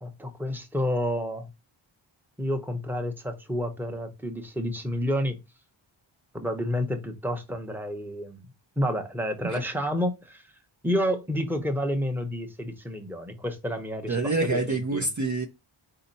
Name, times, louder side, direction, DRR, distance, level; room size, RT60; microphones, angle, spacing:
voice 1, 0.0-1.5 2.4-5.4 6.3-8.5 8.8-10.4 10.8-15.1, equal, 5° right, 0.9 m, -30 dB
voice 2, 14.1-15.5, right 3 dB, 40° right, 0.6 m, -26 dB
4.2 x 2.8 x 4.1 m
wide cardioid pair, 70°, 50 cm